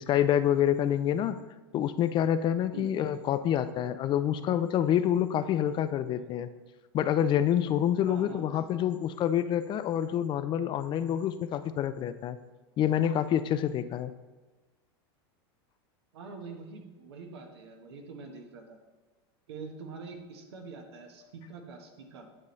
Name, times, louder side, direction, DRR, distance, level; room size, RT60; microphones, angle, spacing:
voice 1, 0.0-1.4 1.7-6.5 6.9-12.4 12.8-14.1, left 10 dB, 35° left, 12 dB, 0.4 m, -27 dB
voice 2, 8.1-8.5 16.1-18.8 19.5-22.3, right 4 dB, 85° right, 3 dB, 1.3 m, -44 dB
9.8 x 5.3 x 3.2 m, 1.2 s
supercardioid pair, 115°, 13 cm